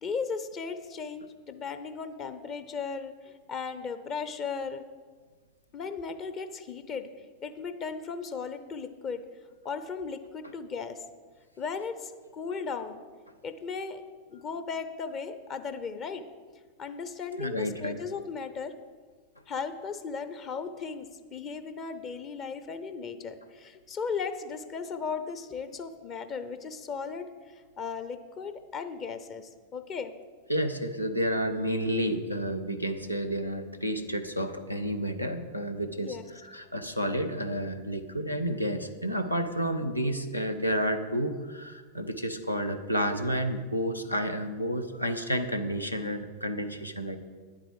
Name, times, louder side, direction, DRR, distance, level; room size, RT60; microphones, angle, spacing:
voice 1, 0.0-4.8 5.7-9.2 9.6-11.0 11.6-13.0 13.4-14.0 14.3-16.2 16.8-18.7 19.5-30.1 36.0-36.3, left 5 dB, 30° left, 10 dB, 0.7 m, -36 dB
voice 2, 17.4-18.0 30.5-36.2 36.5-47.2, equal, 85° left, 7 dB, 0.8 m, -30 dB
10.0 x 8.6 x 4.9 m, 1.5 s
figure-of-eight pair, 90°, 0 cm